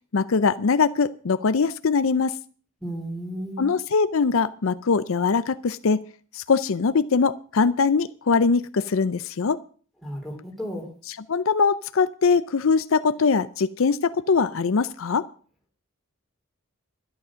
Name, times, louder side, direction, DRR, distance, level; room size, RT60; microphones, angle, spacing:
voice 1, 0.1-2.3 3.6-6.0 6.3-9.6 11.1-15.3, left 5 dB, 70° left, 14 dB, 0.5 m, -22 dB
voice 2, 2.8-3.7 10.0-10.9, equal, ahead, 1 dB, 3.7 m, -33 dB
12.0 x 11.0 x 6.3 m, 0.42 s
head